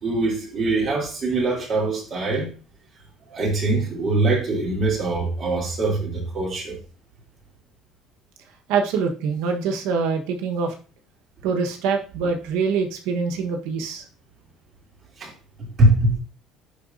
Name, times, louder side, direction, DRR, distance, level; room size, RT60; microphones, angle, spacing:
voice 1, 0.0-2.5 3.3-6.8 15.2-15.3 15.6-16.2, right 2 dB, 40° right, 2.9 m, -22 dB
voice 2, 8.7-10.7 11.4-14.0, right 5 dB, 85° right, 1.2 m, -24 dB
10.0 x 3.9 x 2.6 m
cardioid pair, 125°, 0 cm